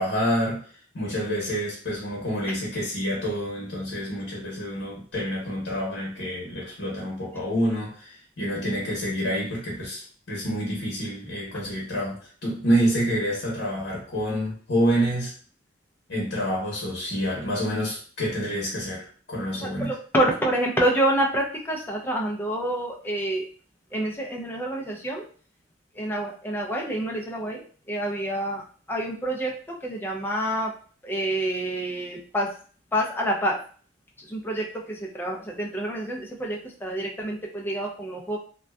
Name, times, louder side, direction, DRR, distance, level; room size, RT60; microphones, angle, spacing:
voice 1, 0.0-15.3 16.1-19.9, equal, 90° left, -4 dB, 0.8 m, -28 dB
voice 2, 19.6-23.5 23.9-25.3 26.0-27.6 27.9-29.5 29.8-30.7 31.0-32.5 32.9-33.6 34.3-38.4, right 1 dB, 10° left, 0 dB, 0.4 m, -27 dB
2.6 x 2.2 x 2.2 m, 0.43 s
head